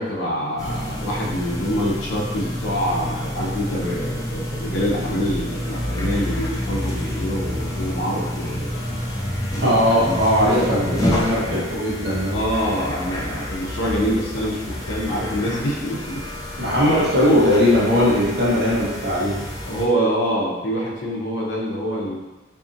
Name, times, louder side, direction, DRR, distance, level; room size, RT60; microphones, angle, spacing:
voice 1, 0.0-8.7 9.5-11.6 12.3-16.2 19.6-22.2, equal, 85° left, -4 dB, 0.6 m, -25 dB
sound 1, 0.6-19.8, equal, 20° left, 0.4 m, -29 dB
voice 2, 9.6-12.3 16.6-19.4, left 1 dB, 60° right, -7 dB, 0.9 m, -19 dB
2.7 x 2.6 x 2.5 m, 1.2 s
head